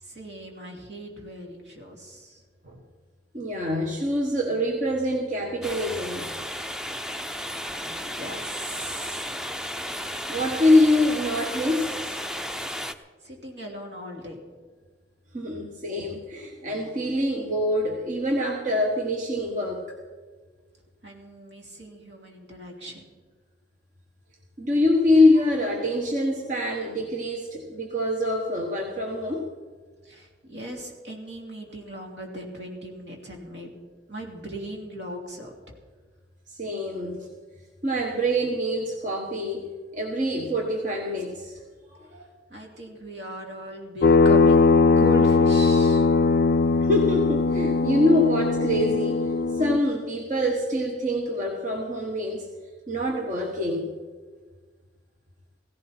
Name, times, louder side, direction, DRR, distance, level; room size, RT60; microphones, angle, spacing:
voice 1, 0.0-2.4 7.5-9.4 12.9-14.4 21.0-23.1 30.0-33.7 34.1-35.7 42.2-46.1, equal, 70° right, 0 dB, 2.9 m, -38 dB
voice 2, 3.3-6.3 10.3-12.2 15.3-19.9 24.6-29.5 36.5-37.3 37.8-39.7 39.9-41.6 41.9-42.3 46.8-49.2 49.5-52.5 52.9-53.9, left 1 dB, 45° right, 1 dB, 1.3 m, -25 dB
sound 1, 5.6-12.9, equal, 5° right, 0.5 m, -33 dB
sound 2, 44.0-49.8, left 4 dB, 60° left, 0.4 m, -20 dB
16.5 x 16.0 x 4.4 m, 1.5 s
head